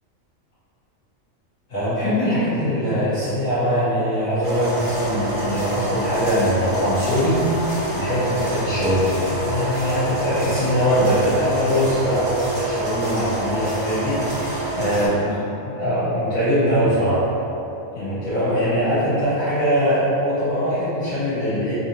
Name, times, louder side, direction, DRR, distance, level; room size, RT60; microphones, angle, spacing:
voice 1, 1.7-15.3 15.6-17.2 17.9-21.7, equal, 80° left, -15 dB, 1.8 m, -22 dB
sound 1, 4.4-15.1, right 1 dB, 35° right, 0.8 m, -27 dB
4.2 x 2.5 x 2.9 m, 2.9 s
omnidirectional pair, 1.4 m